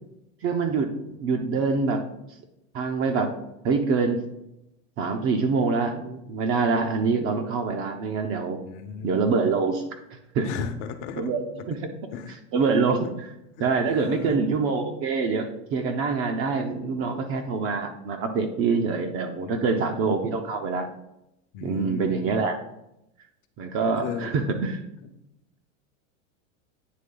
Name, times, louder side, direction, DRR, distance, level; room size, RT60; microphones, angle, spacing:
voice 1, 0.4-2.0 2.7-3.4 3.6-4.2 5.0-8.6 9.0-9.8 10.3-10.5 11.2-11.8 12.5-13.3 13.6-20.9 21.6-22.6 23.6-24.8, right 4 dB, 35° right, 5 dB, 0.6 m, -25 dB
voice 2, 8.5-9.2 10.4-11.3 11.5-11.7 12.1-12.4 13.6-14.4 19.4-19.8 21.5-22.4 23.8-24.3 25.0-25.1, left 7 dB, 55° left, 8 dB, 0.9 m, -36 dB
9.4 x 3.3 x 3.8 m, 0.85 s
supercardioid pair, 140°, 40 cm